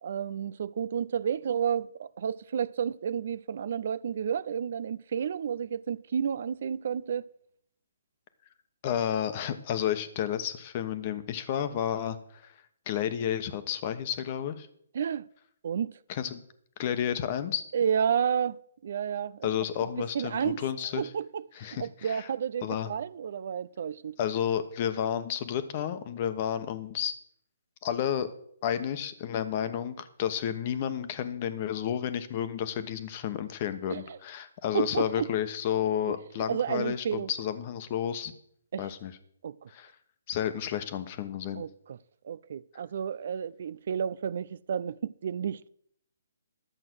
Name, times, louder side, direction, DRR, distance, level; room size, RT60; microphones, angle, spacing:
voice 1, 0.0-7.3 14.9-15.3 15.6-16.0 17.7-19.5 20.0-20.6 21.0-24.2 33.9-34.2 34.7-35.3 36.1-36.2 36.5-37.3 38.7-38.9 39.4-39.7 41.5-42.0 42.2-45.7, right 8 dB, 55° right, 0.4 m, -31 dB
voice 2, 8.8-12.5 12.9-14.7 16.1-16.4 16.8-17.6 19.4-21.1 21.6-22.3 22.6-22.9 24.2-27.1 27.8-28.3 28.6-38.3 38.8-39.1 39.7-39.9 40.3-41.6, left 9 dB, 35° left, 1.1 m, -31 dB
11.5 x 7.8 x 6.2 m
hypercardioid pair, 145°, 0 cm